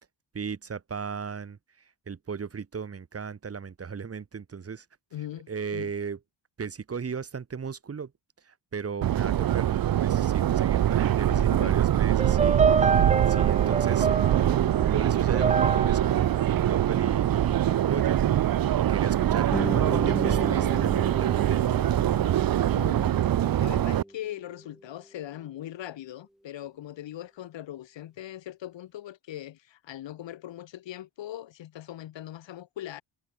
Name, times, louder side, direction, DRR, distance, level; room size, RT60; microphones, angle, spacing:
voice 1, 0.3-1.6 2.1-4.8 5.5-6.2 6.6-8.1 8.4-14.1 14.9-18.2 18.8-21.9, right 6 dB, 35° right, 2.7 m, -36 dB
voice 2, 5.1-5.9 11.3-11.8 22.7-33.0, left 12 dB, 85° left, 5.1 m, -40 dB
Subway metro underground, 9.0-24.0, right 11 dB, 55° right, 1.0 m, -24 dB
sound 1, 12.2-17.5, right 5 dB, 15° right, 0.4 m, -27 dB
Guitar, 19.5-24.9, equal, ahead, 1.4 m, -37 dB
cardioid pair, 140°, 43 cm